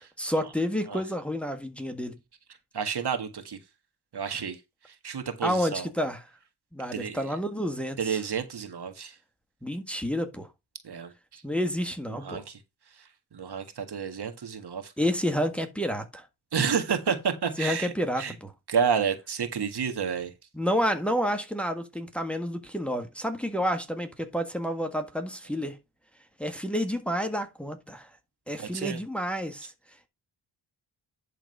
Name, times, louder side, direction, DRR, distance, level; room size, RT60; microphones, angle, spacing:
voice 1, 0.2-2.2 5.4-6.2 6.7-8.2 9.6-10.5 11.4-12.4 15.0-16.2 17.6-18.5 20.5-25.8 26.4-28.1 28.5-29.7, equal, ahead, 1.5 m, -29 dB
voice 2, 2.7-3.6 4.1-4.6 4.9-5.9 6.9-7.3 8.0-9.1 10.8-11.4 12.1-12.6 13.3-14.9 16.5-18.3 18.7-20.3 28.6-29.0, right 6 dB, 55° right, 1.7 m, -30 dB
11.0 x 3.8 x 5.4 m
cardioid pair, 85°, 46 cm